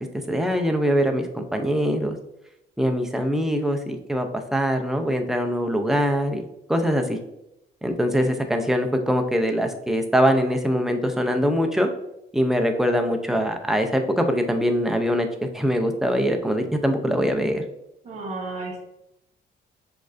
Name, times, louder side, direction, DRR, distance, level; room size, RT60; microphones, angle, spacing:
voice 1, 0.1-2.2 2.8-6.4 6.7-7.2 7.8-11.9 12.3-15.3 15.5-17.6, equal, ahead, 4 dB, 0.3 m, -23 dB
voice 2, 18.0-18.8, right 3 dB, 40° right, -2 dB, 0.9 m, -32 dB
6.3 x 2.4 x 2.4 m, 0.84 s
cardioid pair, 150°, 19 cm